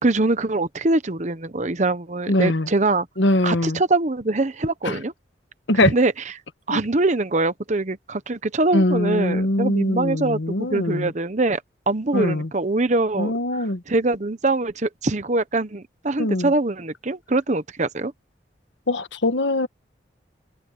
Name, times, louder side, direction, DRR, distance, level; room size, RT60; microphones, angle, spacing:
voice 1, 0.0-3.1 3.4-5.1 5.7-6.1 6.7-11.6 11.9-13.3 13.9-18.1, right 2 dB, 40° right, 1.0 m, -23 dB
voice 2, 2.3-2.7 3.2-3.8 4.8-5.0 5.7-5.9 6.7-6.8 8.7-11.1 12.1-12.5 13.2-13.8 16.2-16.5 18.9-19.7, left 1 dB, 80° left, 1.5 m, -22 dB
head